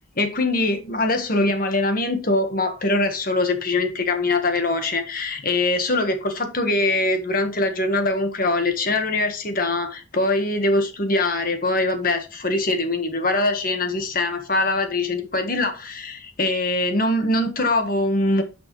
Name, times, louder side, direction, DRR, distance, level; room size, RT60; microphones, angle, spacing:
voice 1, 0.2-18.4, left 2 dB, 45° left, 1.5 m, -22 dB
9.8 x 6.0 x 3.2 m
head